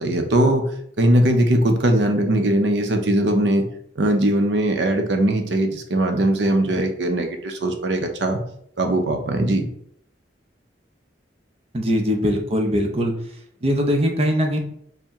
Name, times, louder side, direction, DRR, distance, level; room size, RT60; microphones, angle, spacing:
voice 1, 0.0-3.7 4.0-8.4 8.8-9.7, right 1 dB, 80° right, 5 dB, 0.6 m, -20 dB
voice 2, 11.7-13.1 13.6-14.6, equal, 35° right, 3 dB, 0.6 m, -21 dB
4.4 x 2.1 x 3.5 m, 0.67 s
head